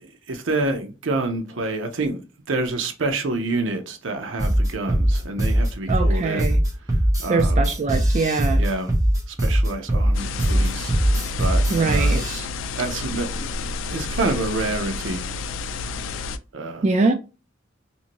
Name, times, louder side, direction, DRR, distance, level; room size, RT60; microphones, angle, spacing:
voice 1, 0.0-2.2 2.5-6.5 7.2-7.7 8.5-8.9 9.3-10.9 11.4-12.2 12.8-15.3 16.5-16.9, right 2 dB, 85° right, 0.6 m, -28 dB
sound 1, 4.4-12.4, right 1 dB, 20° right, 0.7 m, -20 dB
voice 2, 5.9-6.6 7.3-8.6 11.7-12.5 16.8-17.1, right 3 dB, 35° right, 0.3 m, -23 dB
sound 2, 10.1-16.4, left 4 dB, 90° left, 0.3 m, -31 dB
2.7 x 2.5 x 2.8 m
head